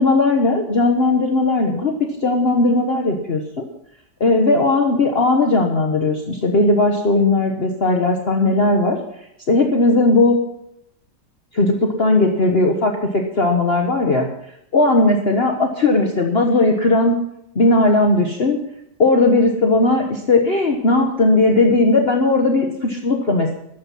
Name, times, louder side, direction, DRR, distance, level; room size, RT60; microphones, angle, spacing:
voice 1, 0.0-1.9 2.2-3.6 4.2-9.0 9.5-10.4 11.5-14.3 14.7-17.2 17.5-18.6 19.0-23.5, left 2 dB, 35° left, 2 dB, 1.4 m, -17 dB
14.5 x 12.0 x 5.6 m, 0.75 s
omnidirectional pair, 1.9 m